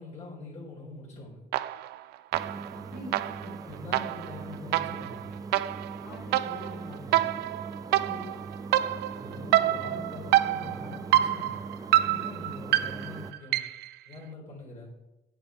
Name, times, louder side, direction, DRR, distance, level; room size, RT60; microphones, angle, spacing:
voice 1, 0.0-1.5 3.7-5.3 6.8-7.3 9.1-11.6 12.0-13.6 14.1-14.9, left 2 dB, 45° left, -3 dB, 4.2 m, -44 dB
sound 1, 1.5-2.0 2.3-13.9, right 14 dB, 75° right, 0.5 m, -27 dB
sound 2, 2.3-13.3, right 4 dB, 20° right, 0.5 m, -41 dB
voice 2, 2.7-3.6 6.0-6.9 7.9-8.4, left 2 dB, 90° left, -1 dB, 3.9 m, -44 dB
9.4 x 9.0 x 4.7 m, 0.97 s
cardioid pair, 110°, 17 cm